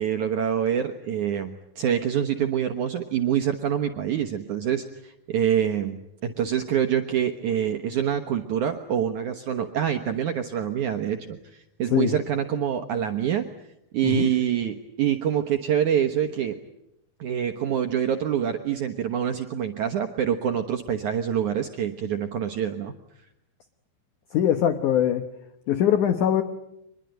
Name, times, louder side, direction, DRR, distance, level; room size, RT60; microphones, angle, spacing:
voice 1, 0.0-13.5 13.9-16.6 17.2-22.9, right 9 dB, 75° right, 5 dB, 1.8 m, -26 dB
voice 2, 24.3-25.2 25.7-26.4, left 10 dB, 70° left, 9 dB, 1.9 m, -21 dB
25.5 x 21.5 x 9.3 m, 0.83 s
omnidirectional pair, 5.1 m